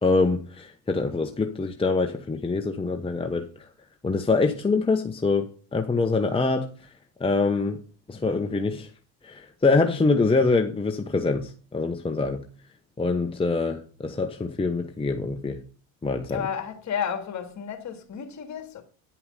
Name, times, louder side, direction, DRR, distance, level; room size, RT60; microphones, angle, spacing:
voice 1, 0.0-3.4 4.0-6.7 7.2-7.8 8.1-8.9 9.2-12.4 13.0-15.6 16.0-16.4, left 3 dB, 15° left, 0.9 m, -24 dB
voice 2, 16.3-18.8, left 7 dB, 40° left, 2.3 m, -32 dB
9.7 x 5.7 x 5.5 m
supercardioid pair, 80°, 43 cm